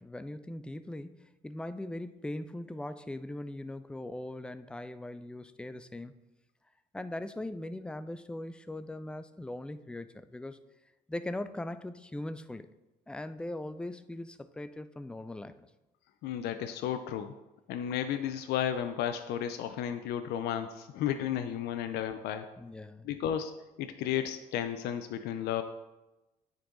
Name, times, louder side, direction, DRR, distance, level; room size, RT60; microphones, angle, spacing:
voice 1, 0.0-6.2 6.9-10.7 11.1-12.7 13.1-15.7 22.6-23.1, left 1 dB, 5° left, 12 dB, 0.3 m, -40 dB
voice 2, 16.2-17.3 17.7-22.5 23.0-23.5 23.8-25.6, left 10 dB, 75° left, 8 dB, 0.5 m, -33 dB
9.6 x 3.9 x 3.8 m, 1.0 s
cardioid pair, 110°, 17 cm